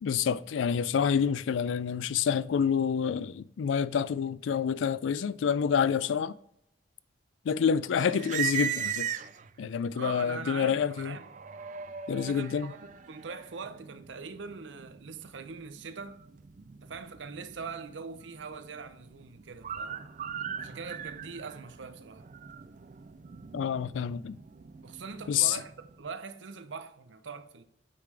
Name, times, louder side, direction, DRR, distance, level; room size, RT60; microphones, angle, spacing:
voice 1, 0.0-6.3 7.5-9.1 9.6-11.2 12.1-12.7 23.5-24.4 25.3-25.6, left 7 dB, 85° left, 0.3 m, -28 dB
sound 1, 8.0-9.7 10.3-26.1, right 8 dB, 40° right, 0.4 m, -40 dB
voice 2, 9.9-11.3 12.1-16.2 16.8-20.1 20.6-22.2 24.8-27.6, right 5 dB, 80° right, 0.7 m, -42 dB
8.5 x 4.9 x 3.3 m
head